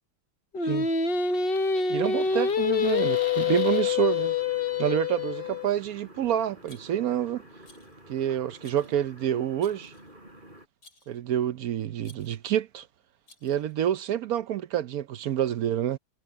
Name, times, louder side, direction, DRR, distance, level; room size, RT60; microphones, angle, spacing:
Singing, 0.5-5.7, left 6 dB, 40° left, 1.0 m, -26 dB
voice 1, 1.9-4.4 4.8-7.4 8.1-9.9 11.1-12.9 13.4-16.0, right 10 dB, 65° right, 1.0 m, -28 dB
sound 1, 2.1-10.7, right 1 dB, 30° right, 4.7 m, -50 dB
Rattle, 6.7-7.2 7.6-8.0 8.6-9.0 9.6-10.1 10.8-11.2 12.0-12.5 13.3-13.8, left 2 dB, 75° left, 8.5 m, -56 dB
omnidirectional pair, 1.8 m